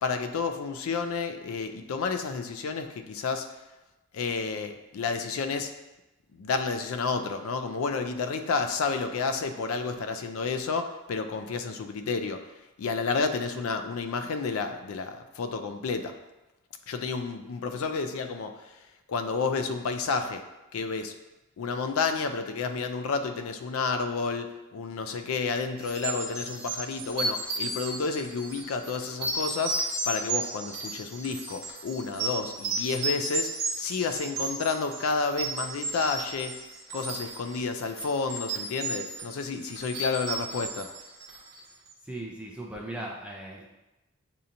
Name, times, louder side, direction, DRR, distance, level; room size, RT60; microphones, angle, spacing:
voice 1, 0.0-3.5 4.1-5.7 6.3-12.5 12.8-16.1 16.9-18.8 19.1-20.4 20.7-21.1 21.6-36.6 36.9-40.9, left 4 dB, 85° left, 7 dB, 0.4 m, -30 dB
sound 1, 25.8-41.7, right 2 dB, 50° right, 0.9 m, -34 dB
voice 2, 42.0-43.7, right 1 dB, 5° right, -3 dB, 0.4 m, -38 dB
6.7 x 2.8 x 2.5 m, 1.0 s
head